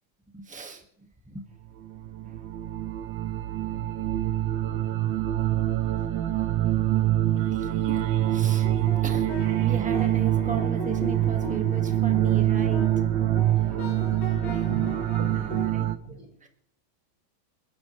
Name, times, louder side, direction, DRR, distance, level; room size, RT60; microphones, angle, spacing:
voice 1, 0.3-1.5 2.2-2.3 7.5-8.1 8.3-8.7 9.0-9.3 9.6-12.9 14.4-14.7 15.4-15.9 16.4-16.5, right 3 dB, 5° right, 4 dB, 1.3 m, -38 dB
sound 1, 1.8-16.0, right 13 dB, 85° right, 1.5 m, -25 dB
sound 2, 8.2-15.7, left 2 dB, 80° left, 5.4 m, -39 dB
voice 2, 13.6-13.9 14.7-16.3, right 2 dB, 35° right, -2 dB, 7.2 m, -40 dB
28.5 x 10.5 x 3.1 m, 0.71 s
omnidirectional pair, 2.1 m